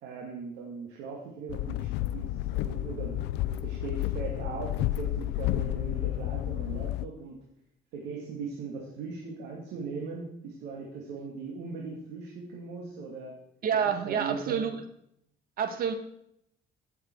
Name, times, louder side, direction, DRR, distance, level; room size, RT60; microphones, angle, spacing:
voice 1, 0.0-7.4 7.9-13.4 14.1-14.6, right 4 dB, 85° right, -2 dB, 2.4 m, -39 dB
sound 1, 1.5-7.1, left 14 dB, 90° left, 0.5 m, -31 dB
voice 2, 13.6-14.7 15.6-15.9, right 7 dB, 60° right, 8 dB, 1.7 m, -28 dB
16.0 x 7.4 x 4.7 m, 0.74 s
cardioid pair, 110°, 17 cm